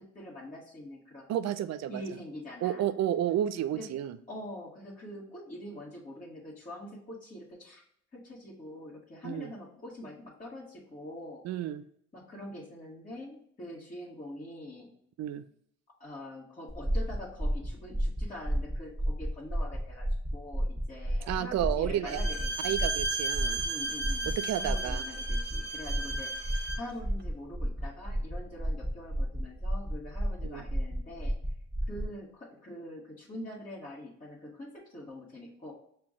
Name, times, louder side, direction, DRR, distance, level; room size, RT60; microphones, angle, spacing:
voice 1, 0.0-1.3 1.9-2.9 3.7-3.9 4.3-7.8 8.1-11.4 12.1-14.9 16.0-22.7 23.6-24.3 24.6-31.3 31.9-35.7, left 1 dB, 25° left, -6 dB, 1.3 m, -44 dB
voice 2, 1.3-2.0 2.6-4.2 9.2-9.5 11.4-11.8 15.2-15.4 21.3-22.2 22.6-23.6 24.3-25.0 30.4-30.6, right 11 dB, 60° right, 14 dB, 0.4 m, -31 dB
sound 1, 16.7-32.1, equal, ahead, 1.3 m, -32 dB
Bowed string instrument, 22.1-26.9, right 2 dB, 35° right, 0.8 m, -34 dB
5.8 x 2.2 x 3.6 m, 0.67 s
cardioid pair, 90°, 30 cm